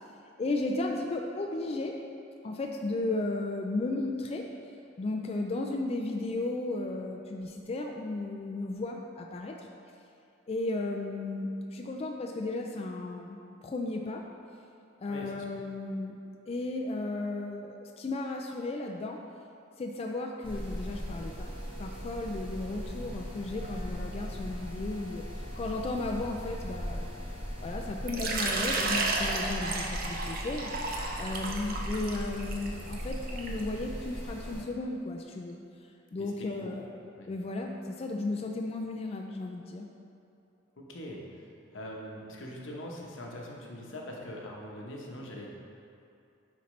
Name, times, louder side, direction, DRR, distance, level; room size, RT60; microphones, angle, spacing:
voice 1, 0.4-2.0 2.4-4.5 5.0-9.7 10.5-14.2 15.0-16.2 16.5-19.2 19.8-21.5 21.8-25.3 25.6-27.1 27.6-35.6 36.1-36.9 37.3-39.9, left 2 dB, 30° left, 2 dB, 0.3 m, -34 dB
voice 2, 15.1-15.4 36.2-36.7 37.2-37.3 40.8-41.4 41.7-45.5, left 1 dB, 85° left, -1 dB, 1.0 m, -42 dB
sound 1, 20.4-34.6, equal, 25° right, 1.1 m, -39 dB
Water / Liquid, 28.1-33.6, right 3 dB, 50° right, 0.7 m, -33 dB
9.8 x 4.2 x 3.2 m, 2.6 s
head